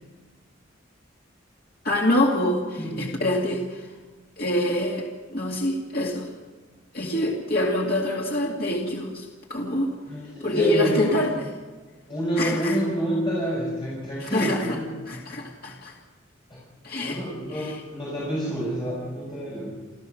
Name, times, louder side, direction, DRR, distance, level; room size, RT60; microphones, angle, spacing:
voice 1, 1.8-3.9 4.4-6.3 6.9-9.9 10.4-11.3 12.4-12.8 14.2-14.8 15.1-15.9 16.8-17.2 17.5-17.8, left 1 dB, 45° left, -2 dB, 2.4 m, -25 dB
voice 2, 2.8-3.2 10.1-11.2 12.1-14.9 16.5-16.6 17.0-19.9, right 1 dB, 25° left, -6 dB, 6.3 m, -28 dB
29.5 x 14.0 x 6.5 m, 1.3 s
head